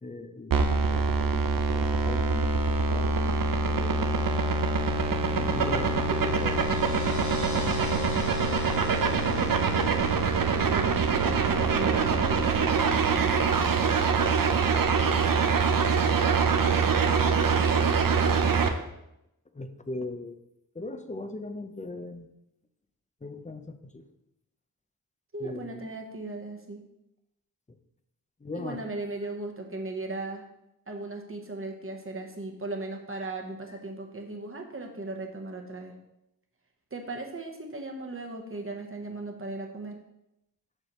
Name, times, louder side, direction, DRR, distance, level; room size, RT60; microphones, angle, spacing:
voice 1, 0.0-4.0 5.3-6.8 9.4-9.6 18.0-18.3 19.5-20.3 20.7-22.3 23.2-24.0 25.4-25.8 28.4-28.8, left 2 dB, 20° left, 9 dB, 0.6 m, -39 dB
sound 1, 0.5-18.7, right 4 dB, 65° right, 0.7 m, -24 dB
sound 2, 5.7-12.0, left 2 dB, 50° left, 2.0 m, -47 dB
voice 2, 9.0-9.7 10.5-13.7 25.3-26.8 28.5-30.4 30.9-35.9 36.9-40.0, right 2 dB, 35° right, 2 dB, 1.2 m, -38 dB
7.6 x 6.2 x 3.1 m, 0.85 s
wide cardioid pair, 75°, 36 cm